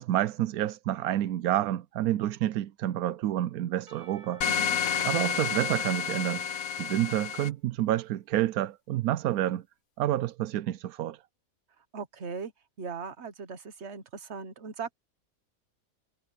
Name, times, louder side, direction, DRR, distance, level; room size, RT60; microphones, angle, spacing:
voice 1, 0.0-4.4 5.0-6.5 6.8-9.6 10.0-11.2, right 13 dB, 90° right, 1.1 m, -29 dB
Percussion / Church bell, 3.9-7.8, right 1 dB, 70° right, 2.6 m, -57 dB
sound 1, 4.4-7.5, left 7 dB, 75° left, 1.4 m, -30 dB
voice 2, 4.4-4.8 11.9-12.5 12.8-14.9, right 5 dB, 50° right, 1.6 m, -39 dB
omnidirectional pair, 1.5 m